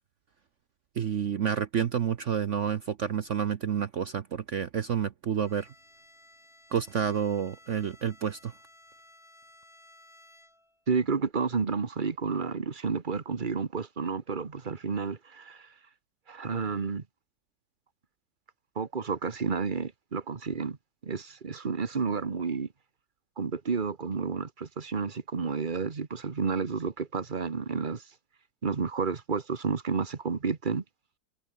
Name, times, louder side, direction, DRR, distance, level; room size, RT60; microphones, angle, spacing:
voice 1, 1.0-5.7 6.7-8.5, right 8 dB, 55° right, 1.0 m, -29 dB
Bowed string instrument, 5.4-10.9, left 1 dB, 15° left, 4.4 m, -57 dB
voice 2, 10.9-15.7 16.3-17.0 18.7-20.8 21.0-22.7 23.4-28.0 28.6-30.8, right 5 dB, 30° right, 1.4 m, -31 dB
omnidirectional pair, 1.9 m